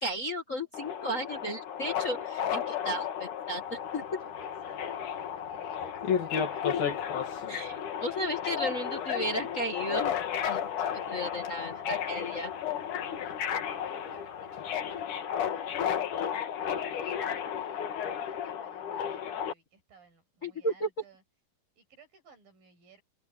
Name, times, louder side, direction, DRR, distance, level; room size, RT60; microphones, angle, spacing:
voice 1, 0.0-4.0 7.5-10.1 10.4-10.6 10.9-12.5 20.4-20.9, equal, 35° left, 1.3 m, -34 dB
Subway metro underground, 0.7-19.5, left 8 dB, 65° left, 3.1 m, -34 dB
sound 1, 3.6-15.0, left 6 dB, 85° left, 4.8 m, -39 dB
voice 2, 4.2-7.0 11.2-12.5 12.9-21.2 21.8-23.0, right 5 dB, 75° right, 8.6 m, -59 dB
open air
omnidirectional pair, 4.1 m